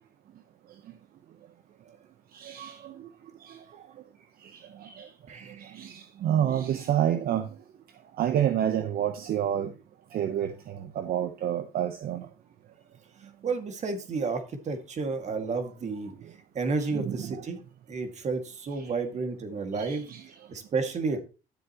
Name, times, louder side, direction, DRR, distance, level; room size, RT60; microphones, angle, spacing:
voice 1, 2.3-2.8 5.0-5.1 5.8-7.5 8.2-9.7 10.1-10.5 11.0-12.2 16.9-17.4 19.8-20.2, right 10 dB, 60° right, 0.9 m, -28 dB
voice 2, 5.3-5.8 13.4-16.1 16.5-17.6 17.9-21.2, right 4 dB, 45° right, 2.1 m, -31 dB
12.0 x 7.7 x 3.0 m
cardioid pair, 110°, 17 cm